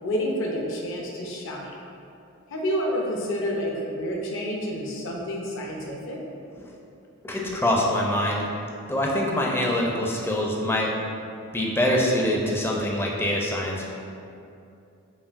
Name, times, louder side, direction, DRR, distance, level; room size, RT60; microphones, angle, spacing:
voice 1, 0.0-1.7 2.5-6.2, equal, 65° left, -1 dB, 0.6 m, -29 dB
voice 2, 7.2-8.4 8.9-10.9 11.5-13.9, left 1 dB, 10° left, -2 dB, 0.4 m, -24 dB
5.4 x 2.5 x 2.5 m, 2.6 s
head